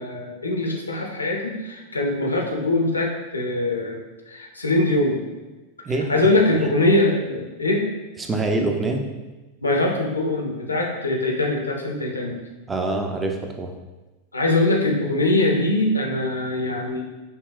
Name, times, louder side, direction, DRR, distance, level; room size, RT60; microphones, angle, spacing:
voice 1, 0.0-4.0 4.3-5.2 5.9-7.9 9.6-12.4 14.3-17.0, left 2 dB, 80° left, 0 dB, 0.6 m, -22 dB
voice 2, 8.2-9.1 12.7-13.7, right 2 dB, 15° right, 4 dB, 0.4 m, -25 dB
5.4 x 2.3 x 2.3 m, 1.2 s
figure-of-eight pair, 90°, 0 cm